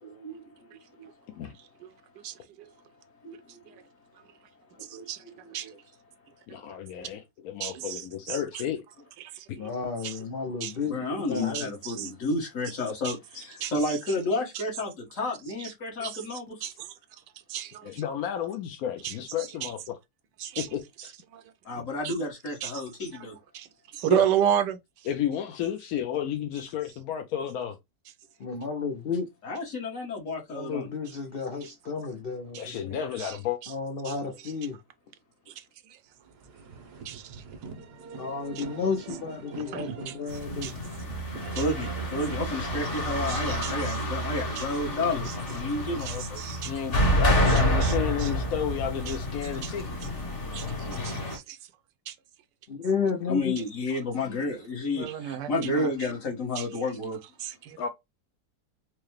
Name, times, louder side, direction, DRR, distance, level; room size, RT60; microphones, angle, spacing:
voice 1, 0.0-1.1 3.2-3.8 4.7-5.0 5.4-5.7 10.8-16.5 21.6-23.4 29.4-30.9 41.5-46.5 50.9-51.0 53.3-57.2, left 2 dB, 55° left, 1.5 m, -31 dB
voice 2, 2.2-2.7 3.7-3.8 4.8-5.2 5.5-5.7 6.5-6.6 7.0-7.1 7.6-8.4 9.2-9.7 10.0-10.2 10.6-10.8 11.4-12.1 13.0-13.1 13.6-14.0 14.5-14.6 15.6-15.7 16.0-16.9 17.5-17.9 19.0-19.7 20.4-20.7 21.3-21.4 22.0-22.1 22.6-22.8 23.1-23.3 23.5-25.1 31.6-31.7 32.5-32.6 33.2-33.4 33.6-33.7 34.0-34.5 35.5-36.0 37.0-37.4 38.6-38.7 39.7-40.7 41.5-41.6 43.3-44.0 44.6-44.7 45.3-45.4 46.0-46.7 47.5-48.3 49.1-49.2 49.4-49.7 50.5-51.6 52.1-52.2 53.9-54.0 55.0-55.9 56.6-57.0 57.4-57.9, right 10 dB, 85° right, 1.2 m, -33 dB
voice 3, 6.5-8.8 17.8-19.9 20.6-21.1 24.1-24.3 25.1-27.8 32.6-33.6 46.7-49.9 57.8-57.9, left 9 dB, 70° left, 1.0 m, -32 dB
voice 4, 9.6-11.0 11.3-11.7 28.4-29.3 30.5-33.0 33.7-34.8 38.2-40.7 52.7-53.5, left 5 dB, 90° left, 0.5 m, -32 dB
sound 1, 36.2-46.2, right 5 dB, 55° right, 0.7 m, -44 dB
sound 2, 40.3-51.4, equal, 40° left, 1.4 m, -29 dB
4.7 x 2.1 x 3.1 m
omnidirectional pair, 1.8 m